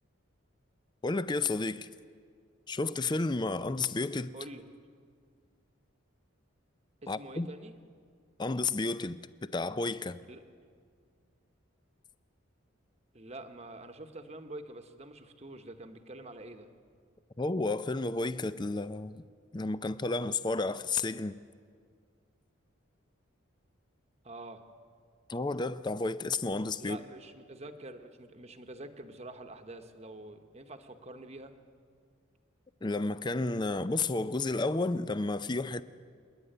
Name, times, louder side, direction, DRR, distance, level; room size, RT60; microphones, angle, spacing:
voice 1, 1.0-1.9 2.7-4.3 7.1-7.5 8.4-10.2 17.4-19.2 19.5-21.4 25.3-27.0 32.8-35.8, left 3 dB, 20° left, 0.5 m, -31 dB
voice 2, 7.0-7.7 10.3-10.4 13.1-16.7 24.2-24.6 26.8-31.5, right 1 dB, 30° right, 1.1 m, -46 dB
28.0 x 11.0 x 8.9 m
head